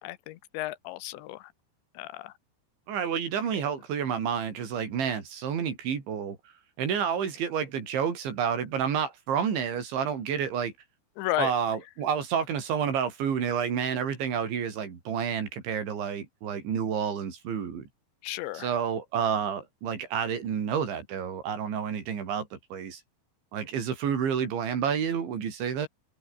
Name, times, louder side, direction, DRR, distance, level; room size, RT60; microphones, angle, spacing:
voice 1, 0.0-1.4 2.0-2.3 11.2-11.5 18.2-18.7, left 16 dB, 80° left, 3.3 m, -33 dB
voice 2, 2.9-6.4 6.8-10.7 11.4-17.8 18.5-23.0 23.5-25.9, right 7 dB, 85° right, 6.5 m, -29 dB
omnidirectional pair, 5.2 m